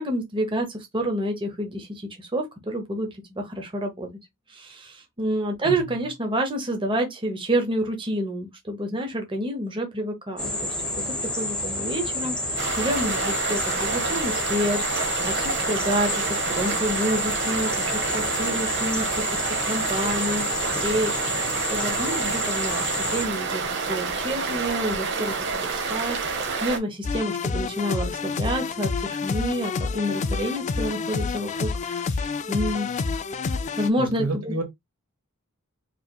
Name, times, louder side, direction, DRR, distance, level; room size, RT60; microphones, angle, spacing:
voice 1, 0.0-4.1 4.5-10.7 11.0-23.6 23.9-32.9 33.8-34.5, right 1 dB, 25° right, 0.9 m, -29 dB
voice 2, 5.6-6.1 34.0-34.6, right 2 dB, 85° right, 1.4 m, -30 dB
sound 1, 10.4-23.2, left 1 dB, 5° left, 1.3 m, -30 dB
sound 2, 12.6-26.8, right 4 dB, 55° right, 1.0 m, -28 dB
sound 3, 27.0-33.9, left 4 dB, 35° left, 0.3 m, -28 dB
4.7 x 3.0 x 2.3 m
head